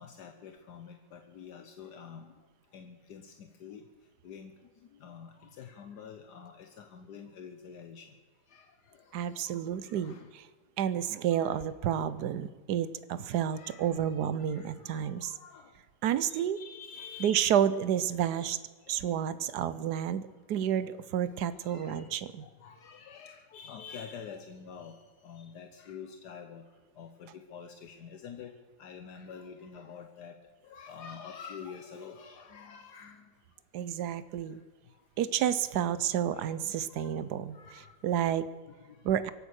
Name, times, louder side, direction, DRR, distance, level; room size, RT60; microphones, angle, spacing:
voice 1, 0.0-10.3 11.3-11.7 13.2-15.8 16.2-17.6 18.3-19.4 20.3-20.5 21.2-33.6 34.4-35.2 35.9-36.6 36.9-39.3, left 6 dB, 75° left, 6 dB, 1.5 m, -49 dB
voice 2, 9.1-10.2 10.8-15.3 16.0-16.6 17.2-18.6 18.9-20.2 20.5-22.4 33.7-34.6 35.2-37.6 38.0-38.5 39.0-39.3, right 9 dB, 75° right, 15 dB, 1.3 m, -30 dB
24.5 x 8.9 x 6.4 m, 1.4 s
omnidirectional pair, 1.8 m